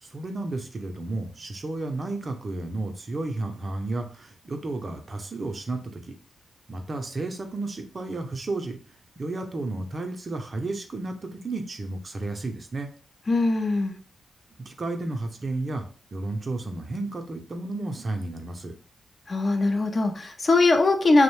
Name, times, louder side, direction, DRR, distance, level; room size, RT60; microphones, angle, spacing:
voice 1, 0.0-6.0 6.7-8.8 9.2-12.9 14.7-15.8 16.1-18.7, right 2 dB, 45° right, 5 dB, 0.5 m, -32 dB
voice 2, 13.3-14.0 19.3-21.2, left 3 dB, 45° left, 5 dB, 0.5 m, -21 dB
2.6 x 2.1 x 3.0 m, 0.39 s
cardioid pair, 60°, 0 cm